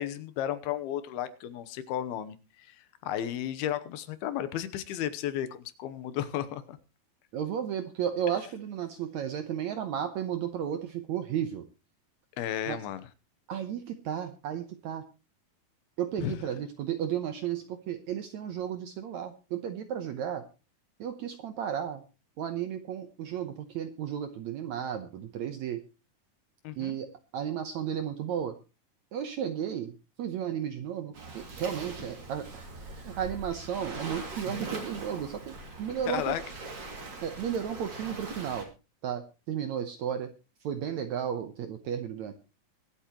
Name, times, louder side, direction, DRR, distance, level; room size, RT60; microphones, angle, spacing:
voice 1, 0.0-6.8 12.4-13.1 16.2-16.4 26.6-26.9 36.1-36.4, left 11 dB, 85° left, 13 dB, 2.9 m, -34 dB
voice 2, 7.3-11.6 12.7-12.8 13.5-15.0 16.0-20.4 21.0-22.0 22.4-25.8 26.8-28.6 29.1-29.9 30.2-36.4 37.2-38.7 39.0-40.3 40.6-42.3, right 9 dB, 70° right, 8 dB, 1.8 m, -33 dB
Waves surf, 31.1-38.6, right 3 dB, 35° right, 2.7 m, -41 dB
23.5 x 8.5 x 3.0 m, 0.30 s
omnidirectional pair, 4.3 m